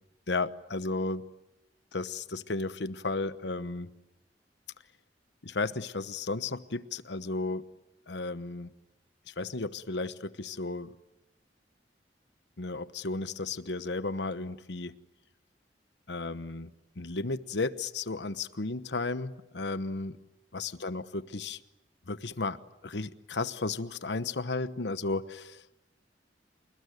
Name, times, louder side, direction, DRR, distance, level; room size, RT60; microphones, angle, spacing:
voice 1, 0.3-1.2 1.9-3.9 5.4-7.6 8.1-8.7 9.3-10.9 12.6-14.9 16.1-16.7 17.0-20.2 20.5-21.6 22.1-25.6, left 3 dB, 80° left, 1.1 m, -34 dB
28.5 x 20.0 x 9.3 m
head